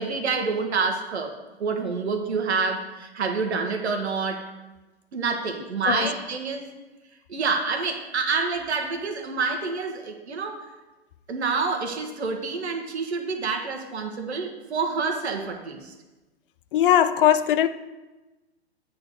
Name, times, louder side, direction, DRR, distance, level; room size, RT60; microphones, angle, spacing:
voice 1, 0.0-1.3 1.6-4.5 5.1-6.7 7.3-10.7 11.3-15.9, right 4 dB, 80° right, 1.3 m, -27 dB
voice 2, 16.7-17.7, left 10 dB, 55° left, 0.5 m, -19 dB
8.5 x 4.0 x 6.4 m
hypercardioid pair, 120°, 33 cm